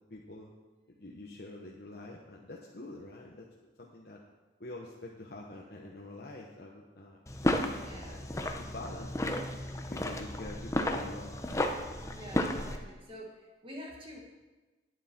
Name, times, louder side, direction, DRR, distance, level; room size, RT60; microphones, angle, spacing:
voice 1, 0.1-0.5 1.0-3.5 3.8-4.2 4.6-9.4 9.9-11.3 11.8-12.1, left 2 dB, 60° left, -2 dB, 1.1 m, -46 dB
sound 1, 7.3-12.8, left 1 dB, 15° left, 0.7 m, -33 dB
voice 2, 7.7-8.3 12.1-14.2, equal, 30° right, -1 dB, 1.7 m, -47 dB
11.0 x 9.9 x 4.5 m, 1.2 s
head